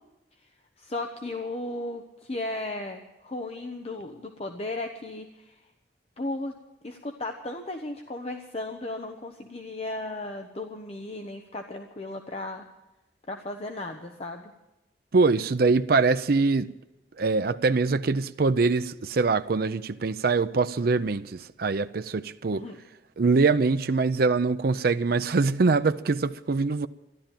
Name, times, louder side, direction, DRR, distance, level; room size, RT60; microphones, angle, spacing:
voice 1, 0.8-5.6 6.2-6.5 6.8-12.7 13.3-14.5 22.5-22.8, left 2 dB, 35° left, 0.9 m, -35 dB
voice 2, 15.1-16.7 17.2-22.6 23.2-26.9, right 4 dB, 55° right, 0.5 m, -23 dB
13.5 x 11.5 x 9.0 m
head